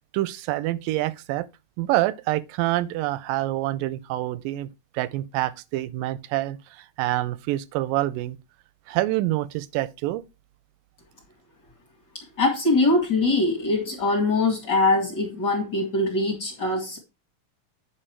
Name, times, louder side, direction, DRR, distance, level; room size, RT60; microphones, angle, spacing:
voice 1, 0.1-1.5 1.8-4.7 4.9-8.4 8.9-10.2, right 16 dB, 90° right, 2.3 m, -26 dB
voice 2, 12.1-17.0, left 2 dB, 40° left, 2.0 m, -23 dB
8.7 x 5.3 x 4.4 m
omnidirectional pair, 3.8 m